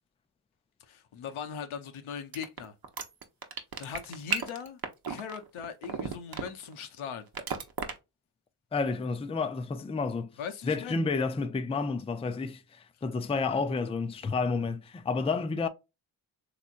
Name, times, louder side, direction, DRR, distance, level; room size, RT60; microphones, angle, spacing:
voice 1, 0.9-2.7 3.8-4.8 5.1-7.3 10.4-11.0, left 7 dB, 75° left, 0.9 m, -39 dB
sound 1, 2.3-6.8 7.3-7.9, right 6 dB, 45° right, 0.9 m, -33 dB
voice 2, 8.7-10.3 10.6-15.7, left 4 dB, 15° left, 0.4 m, -30 dB
3.4 x 3.0 x 2.5 m
cardioid pair, 55°, 49 cm